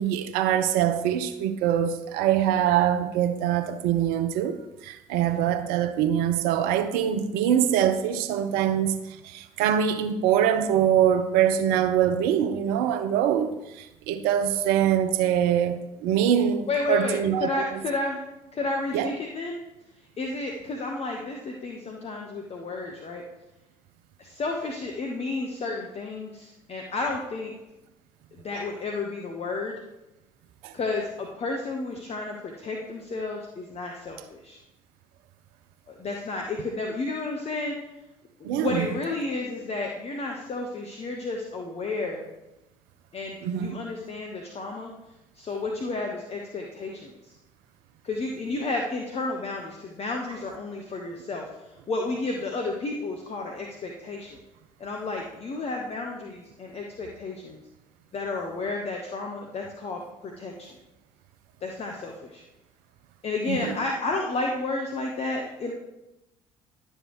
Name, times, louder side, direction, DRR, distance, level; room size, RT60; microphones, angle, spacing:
voice 1, 0.0-17.5 18.9-19.1 30.6-30.7 38.4-38.9 43.4-43.8 63.5-63.7, right 9 dB, 65° right, 0.6 m, -24 dB
voice 2, 16.7-18.2 18.5-19.6 20.2-23.2 24.2-27.5 28.3-29.8 30.7-34.6 35.9-37.7 38.5-42.3 43.1-44.9 45.3-47.3 48.0-54.4 54.8-57.6 58.1-60.8 61.6-62.4 63.2-65.7, left 3 dB, 35° left, 1.0 m, -32 dB
11.0 x 6.6 x 3.1 m
figure-of-eight pair, 50°, 17 cm